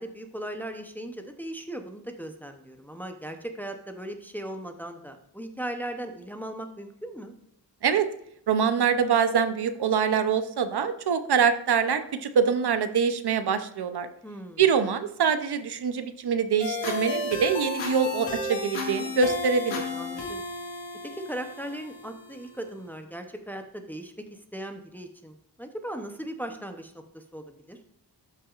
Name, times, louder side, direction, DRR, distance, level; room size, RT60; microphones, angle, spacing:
voice 1, 0.0-7.3 14.2-14.6 19.9-20.5 21.2-27.8, right 1 dB, 5° left, 5 dB, 0.7 m, -38 dB
voice 2, 8.5-14.1 14.6-19.8, right 6 dB, 65° right, 10 dB, 0.7 m, -24 dB
sound 1, 16.6-22.6, left 2 dB, 85° left, 2.0 m, -33 dB
12.5 x 5.8 x 2.4 m, 0.73 s
wide cardioid pair, 140°, 42 cm